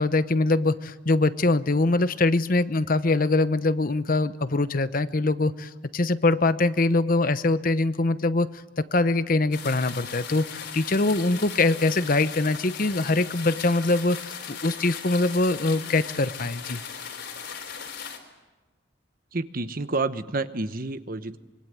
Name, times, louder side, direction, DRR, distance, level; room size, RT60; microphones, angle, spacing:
voice 1, 0.0-8.5 8.8-16.8, left 2 dB, 45° left, 13 dB, 0.9 m, -23 dB
sound 1, 9.5-18.2, left 7 dB, 70° left, 4.1 m, -38 dB
voice 2, 19.3-21.4, right 3 dB, 50° right, 12 dB, 1.1 m, -29 dB
25.0 x 23.5 x 9.4 m, 1.1 s
head